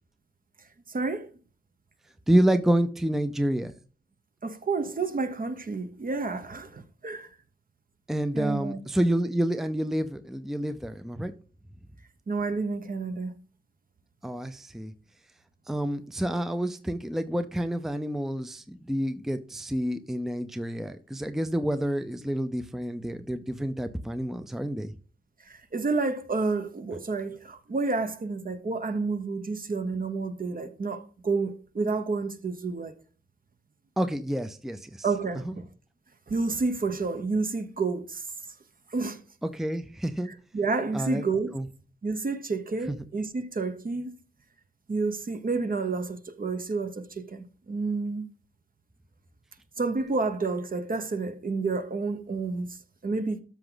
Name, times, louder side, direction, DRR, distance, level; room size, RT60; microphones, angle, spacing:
voice 1, 0.9-1.3 4.4-7.3 8.3-8.8 12.3-13.3 25.4-32.9 35.0-35.7 36.3-38.2 38.9-39.2 40.5-41.5 42.0-44.2 44.9-48.3 49.8-53.4, right 3 dB, 45° right, 1.1 m, -30 dB
voice 2, 2.3-3.7 8.1-11.3 14.2-14.9 15.7-24.9 34.0-35.1 35.4-35.6 39.4-40.3 40.9-41.2 41.5-41.7 42.9-43.0, right 1 dB, ahead, 0.6 m, -28 dB
13.0 x 6.0 x 3.9 m
wide cardioid pair, 110°, 21 cm